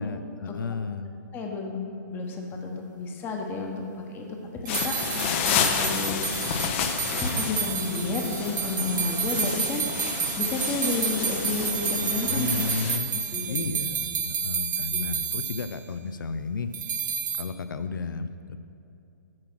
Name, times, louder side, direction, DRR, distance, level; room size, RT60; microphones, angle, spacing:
voice 1, 0.0-1.2 12.2-16.7 17.4-18.6, left 5 dB, 90° left, 11 dB, 0.5 m, -33 dB
voice 2, 1.3-1.8 2.1-3.7 4.1-4.2 4.6-6.2 7.2-9.9 10.4-12.5 13.3-13.7, left 3 dB, 20° left, 2 dB, 1.0 m, -31 dB
sound 1, 4.7-13.0, left 7 dB, 40° left, 0.6 m, -30 dB
sound 2, 4.7-15.8 16.7-17.4, right 7 dB, 65° right, 0.8 m, -30 dB
8.9 x 6.0 x 6.1 m, 2.6 s
hypercardioid pair, 145°, 11 cm